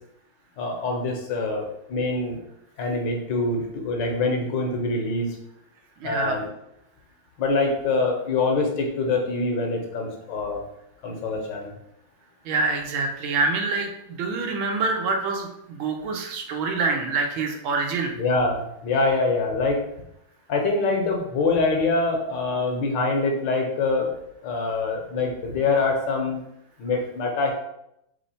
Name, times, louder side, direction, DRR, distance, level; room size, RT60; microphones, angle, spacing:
voice 1, 0.6-2.4 2.8-5.3 6.0-6.5 7.4-10.6 11.0-11.7 18.2-19.8 20.5-24.1 24.4-26.4 26.8-27.5, left 3 dB, 70° left, 1 dB, 1.3 m, -24 dB
voice 2, 6.0-6.4 12.5-18.1, right 3 dB, 80° right, 3 dB, 1.5 m, -26 dB
3.6 x 3.1 x 4.1 m, 0.80 s
omnidirectional pair, 2.3 m